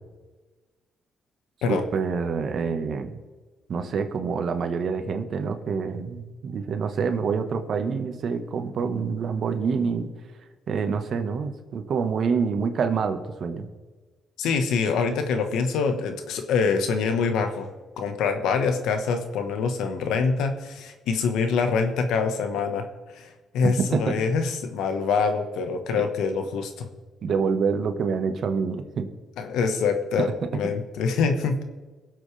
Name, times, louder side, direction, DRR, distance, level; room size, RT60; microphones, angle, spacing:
voice 1, 1.7-3.2 3.7-10.1 10.7-13.7 23.6-24.2 26.0-26.1 27.2-29.1 30.2-30.3 30.6-30.7, right 5 dB, 60° right, 7 dB, 1.4 m, -27 dB
voice 2, 14.4-17.7 18.0-22.9 23.1-26.9 29.4-31.6, left 5 dB, 85° left, 7 dB, 1.3 m, -25 dB
22.5 x 8.0 x 3.4 m, 1.3 s
cardioid pair, 90°, 0 cm